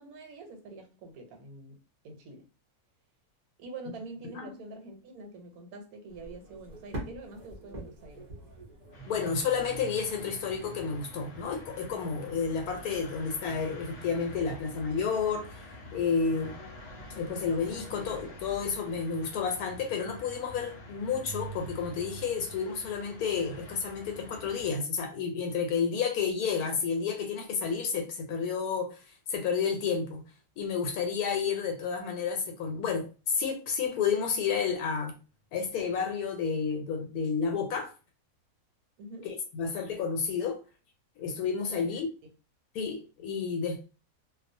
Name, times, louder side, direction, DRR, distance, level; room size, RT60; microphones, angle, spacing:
voice 1, 0.0-1.8 2.0-2.5 3.6-8.3 39.0-39.3 41.7-41.9, right 2 dB, 75° right, 1.2 m, -45 dB
sound 1, 6.1-18.9, right 1 dB, 40° right, 0.6 m, -49 dB
sound 2, 8.9-24.7, right 1 dB, 60° left, 0.9 m, -46 dB
voice 2, 9.1-15.6 15.9-16.5 17.1-29.0 29.3-30.2 30.6-35.1 35.5-37.9 39.2-40.6 41.2-42.1 42.7-43.9, left 6 dB, 85° left, 1.1 m, -31 dB
2.4 x 2.3 x 2.6 m
omnidirectional pair, 1.6 m